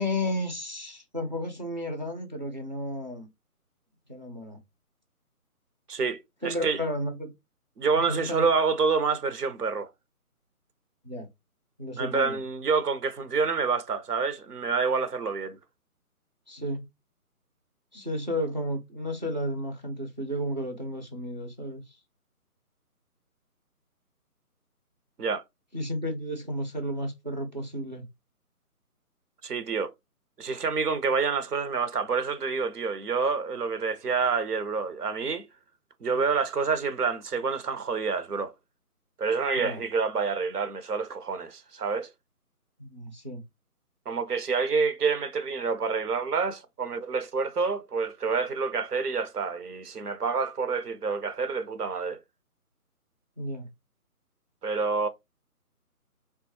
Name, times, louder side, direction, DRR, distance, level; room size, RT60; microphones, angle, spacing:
voice 1, 0.0-3.3 4.1-4.6 6.4-7.3 7.9-8.4 11.0-11.3 11.8-12.4 16.5-16.9 17.9-21.8 25.7-28.1 39.6-39.8 42.8-43.4 53.4-53.7, equal, 30° right, 0.5 m, -32 dB
voice 2, 5.9-6.8 7.8-9.9 12.0-15.6 25.2-25.4 29.4-29.9 30.4-35.5 36.0-38.5 39.2-42.1 44.1-52.2 54.6-55.1, right 5 dB, 85° right, 0.7 m, -28 dB
3.5 x 2.3 x 2.8 m
figure-of-eight pair, 150°, 45 cm